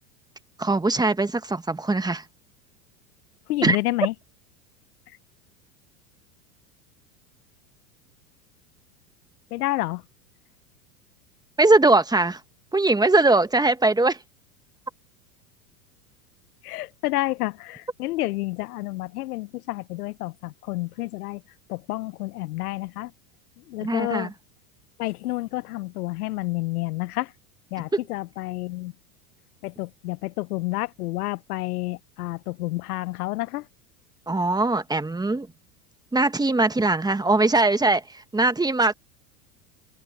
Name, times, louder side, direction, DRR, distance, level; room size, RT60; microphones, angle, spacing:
voice 1, 0.6-2.2 3.6-3.8 11.6-12.4 12.7-14.2 23.8-24.3 34.3-35.5 36.1-38.9, right 2 dB, 10° right, 1.5 m, -21 dB
voice 2, 3.5-4.1 5.1-5.2 9.5-10.0 16.6-21.4 21.7-23.1 23.6-24.3 25.0-27.3 27.7-28.9 29.6-33.7, left 18 dB, 75° left, 0.9 m, -29 dB
hypercardioid pair, 100°, 45 cm